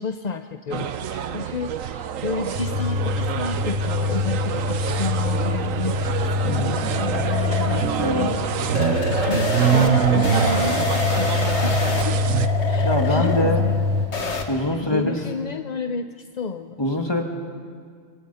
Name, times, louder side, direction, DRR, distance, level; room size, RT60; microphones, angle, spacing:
voice 1, 0.0-8.5 9.2-12.2 12.7-16.8, left 4 dB, 40° left, 8 dB, 0.6 m, -31 dB
sound 1, 0.7-12.5, right 9 dB, 75° right, 1.3 m, -25 dB
sound 2, 2.5-14.1, left 3 dB, 35° right, 7.3 m, -25 dB
sound 3, 5.5-14.4, left 3 dB, 55° left, 2.0 m, -28 dB
voice 2, 6.4-6.8 8.0-8.3 12.8-13.7 14.5-15.2 16.8-17.2, left 1 dB, 20° left, 3 dB, 2.2 m, -24 dB
27.5 x 24.5 x 5.7 m, 2.1 s
omnidirectional pair, 1.4 m